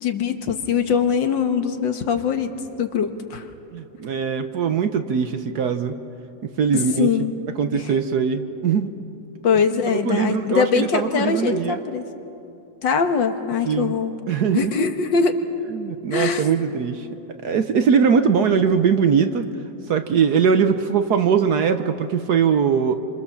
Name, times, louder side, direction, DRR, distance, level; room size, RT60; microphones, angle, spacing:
voice 1, 0.0-2.5 2.8-3.5 7.0-7.3 9.4-12.0 12.8-14.1 14.5-15.4 16.1-16.4, left 6 dB, 85° left, 7 dB, 2.1 m, -22 dB
voice 2, 3.7-6.0 6.4-7.1 7.6-8.9 9.5-9.6 10.0-11.8 13.6-14.0 14.3-14.7 15.7-17.1 17.4-19.5 19.9-23.0, right 6 dB, 65° right, 8 dB, 1.4 m, -21 dB
28.0 x 26.0 x 7.2 m, 2.8 s
omnidirectional pair, 2.0 m